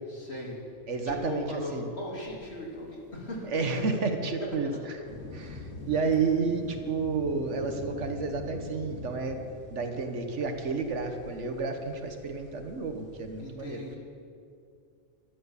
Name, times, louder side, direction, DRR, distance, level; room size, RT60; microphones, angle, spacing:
voice 1, 0.1-0.5 1.0-3.9 4.4-4.8 5.9-6.4 13.4-14.0, left 1 dB, 60° left, -3 dB, 3.1 m, -39 dB
voice 2, 0.9-1.9 3.5-5.0 5.3-9.4 9.7-13.8, right 4 dB, 75° right, 5 dB, 1.5 m, -31 dB
sound 1, 5.0-13.4, left 2 dB, 80° left, 2.6 m, -44 dB
12.5 x 12.0 x 7.2 m, 2.4 s
omnidirectional pair, 1.2 m